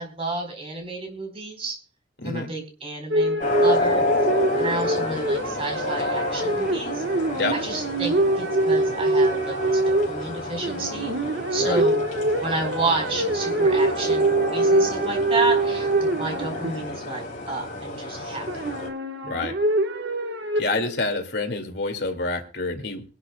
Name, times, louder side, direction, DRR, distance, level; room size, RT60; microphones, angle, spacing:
voice 1, 0.0-1.8 2.2-4.0 4.6-7.0 7.5-12.0 12.4-18.6, right 2 dB, 35° right, 3 dB, 4.3 m, -31 dB
sound 1, 3.1-17.1 18.5-20.9, right 2 dB, 80° right, 1.3 m, -24 dB
sound 2, 3.4-18.9, left 2 dB, 45° left, 4.4 m, -30 dB
voice 2, 19.2-19.6 20.6-23.0, left 3 dB, 75° left, 4 dB, 2.3 m, -27 dB
23.5 x 12.0 x 2.3 m, 0.34 s
head